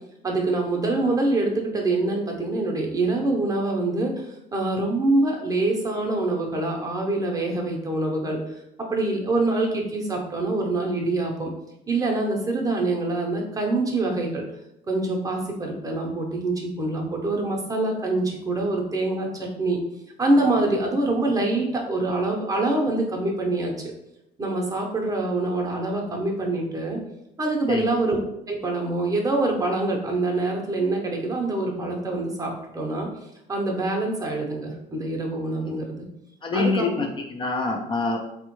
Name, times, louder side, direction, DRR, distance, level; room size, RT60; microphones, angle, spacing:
voice 1, 0.2-4.3 4.5-8.4 8.9-11.5 11.9-14.4 14.9-19.8 20.2-23.9 24.4-27.0 27.4-28.2 28.5-33.1 33.5-35.9 36.5-37.1, right 2 dB, 20° right, 0 dB, 0.6 m, -25 dB
voice 2, 36.4-38.2, left 3 dB, 30° left, 2 dB, 0.3 m, -25 dB
3.4 x 2.1 x 3.0 m, 0.84 s
cardioid pair, 110°, 17 cm